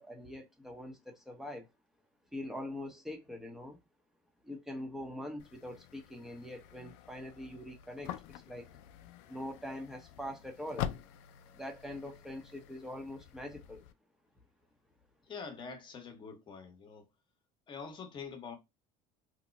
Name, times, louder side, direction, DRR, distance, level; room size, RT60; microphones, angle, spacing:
voice 1, 0.0-1.7 2.3-3.8 4.4-8.7 9.3-10.9 11.5-13.8, left 1 dB, ahead, 0.7 m, -43 dB
sound 1, 5.4-13.9, left 11 dB, 85° left, 0.4 m, -46 dB
voice 2, 15.3-17.1 17.7-18.6, left 5 dB, 30° left, 0.9 m, -45 dB
2.9 x 2.1 x 3.8 m
cardioid pair, 135°, 15 cm